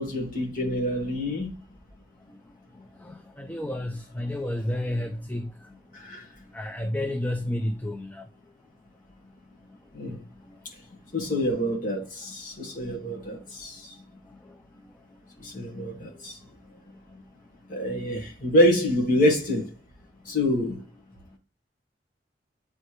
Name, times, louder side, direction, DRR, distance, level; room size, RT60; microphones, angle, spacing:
voice 1, 0.0-1.5 5.9-6.3 9.9-10.2 11.1-13.9 15.4-16.4 17.7-19.7 20.3-20.8, left 1 dB, 50° left, 1.9 m, -26 dB
voice 2, 2.7-5.9 6.5-8.3 10.1-10.2 10.4-10.6 13.1-13.2 14.2-14.6 15.4-15.6, left 1 dB, 10° left, 0.4 m, -32 dB
8.0 x 4.3 x 3.2 m
head